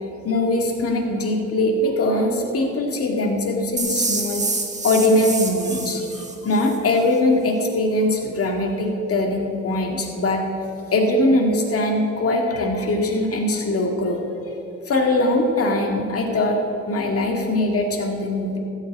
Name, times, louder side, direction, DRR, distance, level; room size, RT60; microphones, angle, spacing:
voice 1, 0.2-4.4 4.8-10.5 10.9-14.2 14.9-18.6, left 1 dB, 50° left, 1 dB, 2.1 m, -21 dB
sound 1, 3.8-6.8, right 3 dB, 25° right, 1.4 m, -27 dB
14.0 x 5.8 x 8.7 m, 2.8 s
cardioid pair, 90°, 30 cm